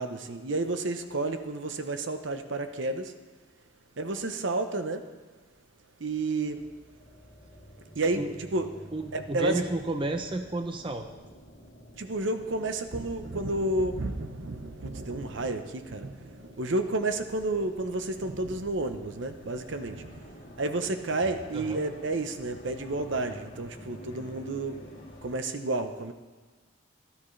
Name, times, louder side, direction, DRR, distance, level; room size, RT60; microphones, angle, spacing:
voice 1, 0.0-3.1 4.0-5.1 6.0-6.6 7.9-8.7 9.1-9.6 11.9-24.8 25.2-26.1, right 2 dB, 65° right, 8 dB, 0.8 m, -31 dB
sound 1, 6.4-25.4, equal, 50° left, 2.4 m, -50 dB
voice 2, 8.9-11.1 21.5-21.8, right 2 dB, 25° right, 6 dB, 0.6 m, -31 dB
16.0 x 12.5 x 3.3 m, 1.3 s
head